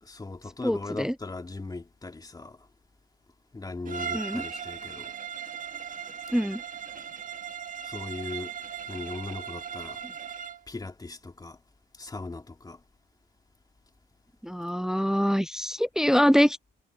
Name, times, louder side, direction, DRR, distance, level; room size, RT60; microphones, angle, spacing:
voice 1, 0.0-2.7 3.5-5.1 7.8-8.5 8.9-10.0 10.7-11.6 11.9-12.8, left 3 dB, 20° left, 2.4 m, -39 dB
voice 2, 0.6-1.1 4.1-4.4 6.3-6.6 14.4-16.6, equal, 5° right, 0.3 m, -24 dB
Bowed string instrument, 3.8-10.7, right 7 dB, 40° right, 1.6 m, -38 dB
cardioid pair, 90°, 20 cm